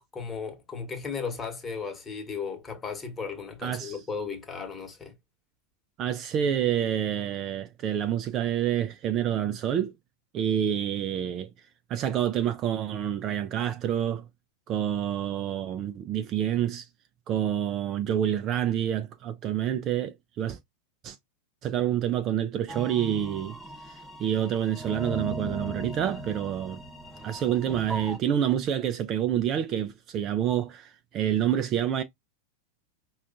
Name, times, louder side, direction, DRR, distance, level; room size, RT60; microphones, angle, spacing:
voice 1, 0.1-5.1, left 5 dB, 20° left, 1.1 m, -35 dB
voice 2, 3.6-4.0 6.0-9.9 10.3-11.5 11.9-14.3 14.7-16.9 17.3-20.6 21.0-21.2 21.6-23.6 23.8-26.8 27.2-32.0, right 10 dB, 35° right, 0.4 m, -28 dB
sound 1, 22.7-28.2, right 1 dB, 5° right, 0.9 m, -38 dB
5.1 x 2.3 x 2.4 m
figure-of-eight pair, 90°, 0 cm